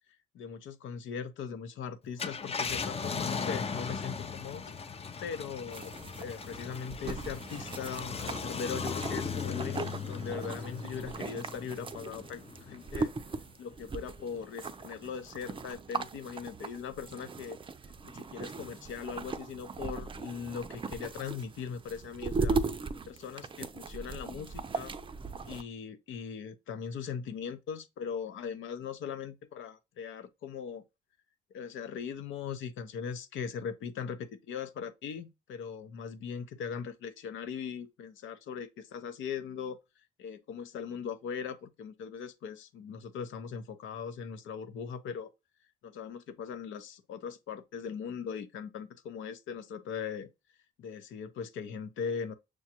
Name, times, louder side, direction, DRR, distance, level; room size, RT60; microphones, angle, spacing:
voice 1, 0.3-4.6 5.2-13.1 13.6-17.6 18.0-22.6 23.1-24.9 25.5-30.8 31.5-39.8 40.2-45.3 45.8-50.3 50.8-52.3, left 7 dB, 80° left, 0.8 m, -40 dB
Car, 2.0-12.9 13.4-13.5 15.5-15.7, left 5 dB, 30° left, 0.6 m, -38 dB
sound 1, 5.7-25.6, right 4 dB, 25° right, 0.5 m, -38 dB
6.3 x 2.3 x 2.8 m
cardioid pair, 90°, 20 cm